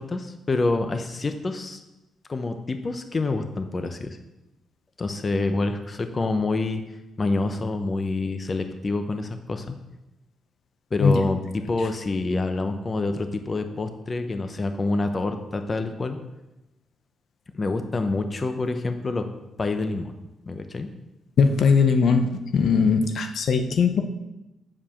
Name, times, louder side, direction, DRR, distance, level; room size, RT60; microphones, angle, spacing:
voice 1, 0.0-1.8 2.3-4.2 5.0-6.8 7.2-9.7 10.9-16.2 17.5-19.2 19.6-20.1 20.5-20.9, left 3 dB, 30° left, 7 dB, 0.8 m, -27 dB
voice 2, 21.4-22.3 22.5-24.0, left 5 dB, 60° left, 6 dB, 0.8 m, -19 dB
7.7 x 4.8 x 7.1 m, 0.97 s
cardioid pair, 105°, 0 cm